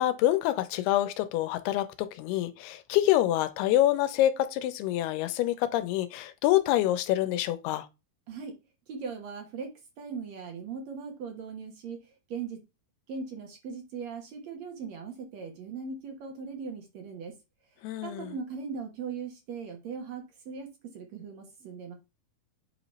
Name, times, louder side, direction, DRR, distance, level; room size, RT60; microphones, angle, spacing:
voice 1, 0.0-7.9 17.8-18.3, left 14 dB, 90° left, 2.6 m, -26 dB
voice 2, 8.9-12.6 13.1-17.4 18.0-21.9, right 5 dB, 60° right, 1.9 m, -39 dB
8.2 x 3.0 x 5.4 m
omnidirectional pair, 4.6 m